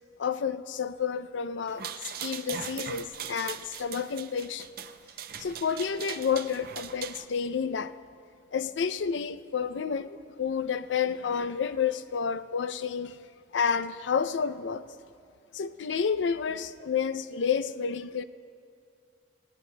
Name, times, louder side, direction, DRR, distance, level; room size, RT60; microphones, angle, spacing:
voice 1, 0.2-4.7 5.4-7.9 8.5-13.2 13.5-14.8 15.5-18.2, left 6 dB, 80° left, 0.4 m, -30 dB
sound 1, 1.7-7.2, right 8 dB, 50° right, 0.5 m, -40 dB
20.0 x 17.5 x 2.2 m
head